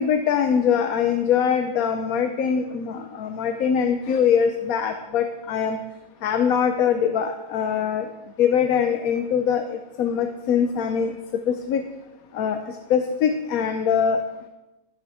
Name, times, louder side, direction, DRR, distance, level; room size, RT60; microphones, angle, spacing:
voice 1, 0.0-5.8 6.2-8.0 8.4-11.1 11.5-11.8 12.3-12.6 12.9-14.2, left 7 dB, 85° left, 7 dB, 1.1 m, -22 dB
19.0 x 6.4 x 3.6 m, 1.0 s
omnidirectional pair, 1.5 m